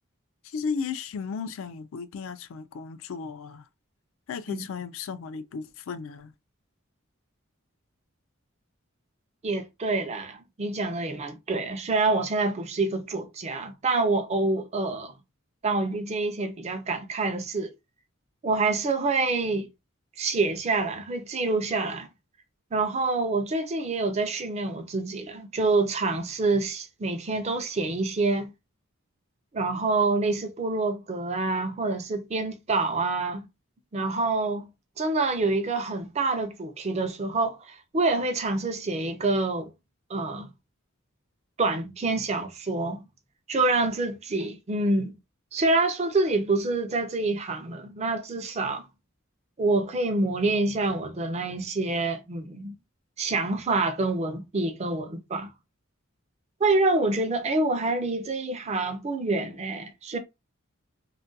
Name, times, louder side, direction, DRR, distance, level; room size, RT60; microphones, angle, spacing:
voice 1, 0.4-3.7 4.3-6.3, left 5 dB, 65° left, 0.3 m, -35 dB
voice 2, 9.4-15.1 15.6-17.7 18.4-19.7 20.2-22.1 22.7-28.5 29.5-33.5 33.9-34.7 35.0-39.7 40.1-40.5 41.6-43.1 43.5-45.2 45.5-48.9 49.6-52.7 53.2-55.5 56.6-60.2, right 3 dB, 30° right, 0.4 m, -27 dB
2.3 x 2.2 x 2.6 m
head